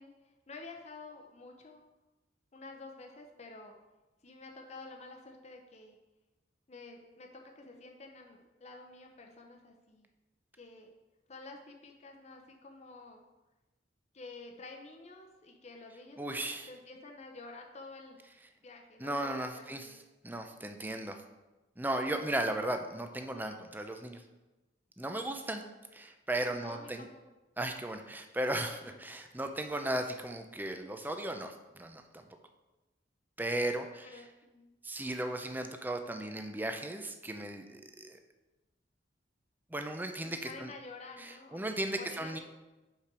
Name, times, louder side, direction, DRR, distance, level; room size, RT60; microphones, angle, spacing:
voice 1, 0.0-1.8 2.5-3.7 4.2-6.0 6.7-10.1 10.6-10.9 11.3-13.2 14.1-16.3 16.7-18.2 18.6-19.9 22.0-22.9 25.0-25.2 26.6-27.2 28.9-29.0 33.7-34.7 40.4-42.4, left 3 dB, 35° left, 2 dB, 0.7 m, -50 dB
voice 2, 16.2-16.7 19.0-20.0 20.2-21.2 21.8-24.2 25.0-25.6 25.9-27.1 27.6-32.2 33.4-34.1 34.8-38.2 39.7-40.7 41.2-42.4, right 1 dB, 10° right, 5 dB, 0.5 m, -36 dB
5.6 x 5.0 x 6.1 m, 1.1 s
head